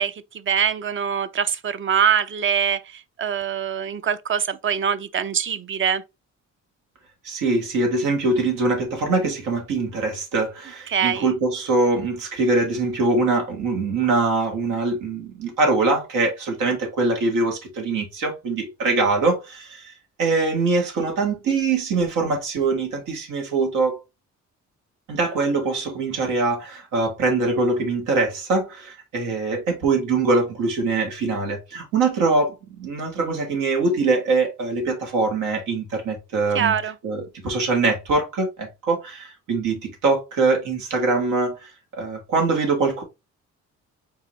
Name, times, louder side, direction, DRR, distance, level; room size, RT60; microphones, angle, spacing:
voice 1, 0.0-6.0 10.9-11.3 36.5-37.0, right 8 dB, 40° right, 0.6 m, -23 dB
voice 2, 7.2-19.9 20.2-24.0 25.1-36.7 37.0-43.0, right 3 dB, 90° right, 1.7 m, -23 dB
4.7 x 3.7 x 3.1 m
cardioid pair, 90°, 30 cm